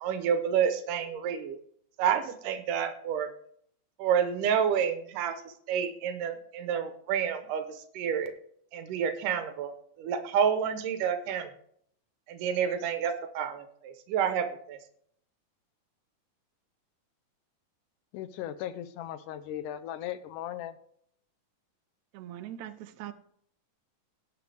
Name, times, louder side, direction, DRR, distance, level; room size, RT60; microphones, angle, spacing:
voice 1, 0.0-1.6 2.0-3.3 4.0-8.3 8.7-9.7 10.0-11.5 12.3-14.8, right 8 dB, 90° right, 8 dB, 2.6 m, -29 dB
voice 2, 18.1-20.7, left 11 dB, 85° left, 12 dB, 2.2 m, -37 dB
voice 3, 22.1-23.1, right 12 dB, 75° right, 9 dB, 1.9 m, -41 dB
18.0 x 6.4 x 3.4 m, 0.64 s
omnidirectional pair, 3.6 m